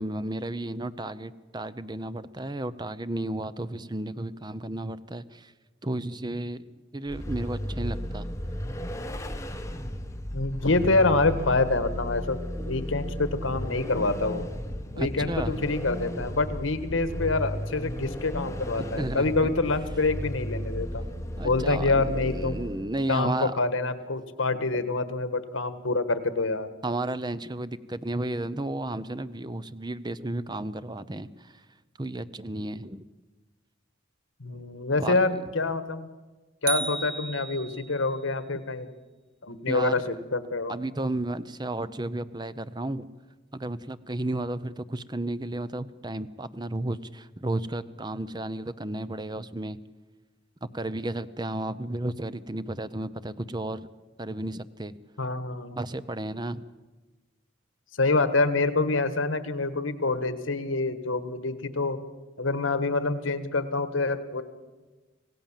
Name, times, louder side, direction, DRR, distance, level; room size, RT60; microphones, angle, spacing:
voice 1, 0.0-5.5 5.8-8.4 12.6-13.1 13.5-14.1 15.0-15.7 19.0-19.5 21.4-23.6 24.5-24.8 26.8-31.6 32.0-33.1 35.0-35.4 39.7-40.0 40.7-43.1 43.5-49.8 50.7-53.9 54.2-55.0 55.8-56.6, right 1 dB, 20° right, 13 dB, 0.7 m, -33 dB
Vehicle, 7.1-23.0, equal, 15° left, 1.2 m, -34 dB
voice 2, 10.3-14.5 14.9-21.0 21.4-22.6 23.1-26.7 34.4-36.1 36.6-38.9 39.4-40.7 55.2-55.8 58.0-62.0 62.4-64.4, left 3 dB, 85° left, 12 dB, 1.5 m, -26 dB
sound 1, 36.7-38.1, right 5 dB, 45° right, 1.7 m, -33 dB
26.0 x 17.0 x 7.4 m, 1.2 s
head